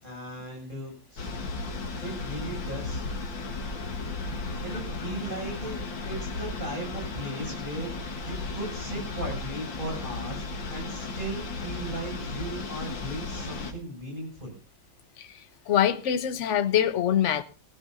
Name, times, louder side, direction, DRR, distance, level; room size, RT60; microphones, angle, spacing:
voice 1, 0.0-1.3 2.0-3.0 4.6-14.6, right 1 dB, 25° right, 7.0 m, -37 dB
sound 1, 1.2-13.7, left 3 dB, 85° left, 2.5 m, -35 dB
voice 2, 15.7-17.4, left 10 dB, 50° left, 1.0 m, -24 dB
20.0 x 15.0 x 2.7 m
omnidirectional pair, 2.0 m